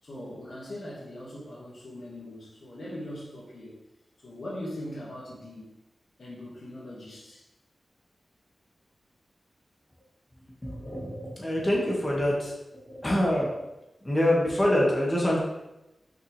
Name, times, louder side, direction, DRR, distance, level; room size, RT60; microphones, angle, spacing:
voice 1, 0.0-3.8 4.2-5.8 6.2-7.5, left 1 dB, 70° left, -5 dB, 2.2 m, -40 dB
voice 2, 10.6-12.5 12.9-13.7 14.0-15.4, left 1 dB, 25° left, -4 dB, 2.4 m, -25 dB
6.4 x 5.6 x 3.6 m, 0.95 s
cardioid pair, 45°, 0 cm